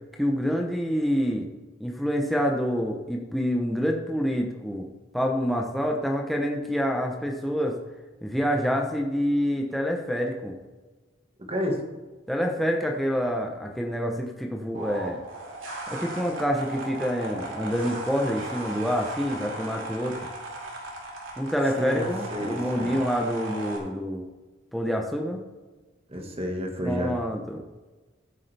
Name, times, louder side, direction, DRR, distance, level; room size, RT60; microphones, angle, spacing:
voice 1, 0.2-1.5 1.8-4.9 5.1-7.8 8.2-10.5 12.3-15.2 15.9-20.2 21.4-24.2 24.7-25.4 26.8-27.6, equal, ahead, 1 dB, 0.8 m, -27 dB
voice 2, 11.5-11.8 21.8-23.0 26.1-27.2, equal, 30° right, 2 dB, 1.6 m, -30 dB
sound 1, 14.7-23.8, right 1 dB, 85° right, 2.5 m, -37 dB
14.5 x 8.3 x 3.4 m, 1.2 s
head